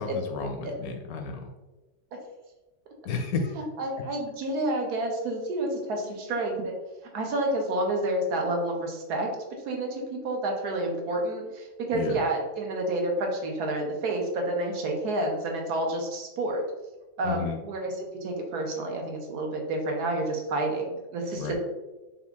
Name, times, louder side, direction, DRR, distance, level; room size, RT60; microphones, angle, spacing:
voice 1, 0.0-1.5 3.0-3.5 11.9-12.2 17.2-17.6 21.3-21.5, left 4 dB, 70° left, 4 dB, 1.0 m, -32 dB
voice 2, 3.5-6.8 7.1-9.3 9.7-16.6 17.2-21.5, right 1 dB, 80° right, 1 dB, 1.4 m, -29 dB
5.4 x 2.4 x 3.4 m, 1.1 s
omnidirectional pair, 1.7 m